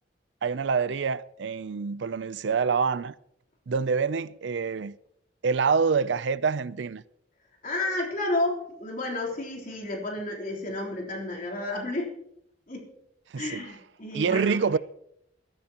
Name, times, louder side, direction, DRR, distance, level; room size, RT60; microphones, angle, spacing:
voice 1, 0.4-3.1 3.7-5.0 5.4-7.0 13.3-13.7 14.1-14.8, right 5 dB, 70° right, 0.5 m, -26 dB
voice 2, 7.6-12.2 12.7-12.9 13.4-14.6, left 2 dB, 45° left, 3.6 m, -31 dB
21.5 x 13.0 x 2.9 m
head